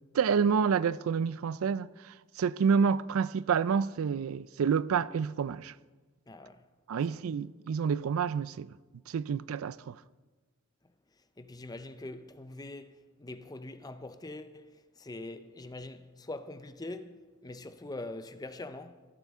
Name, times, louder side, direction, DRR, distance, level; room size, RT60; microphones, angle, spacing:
voice 1, 0.1-5.7 6.9-8.7 9.1-10.0, right 6 dB, 85° right, 0.4 m, -28 dB
voice 2, 6.3-6.7 11.4-19.1, left 2 dB, 20° left, 0.6 m, -43 dB
16.0 x 12.5 x 3.6 m
head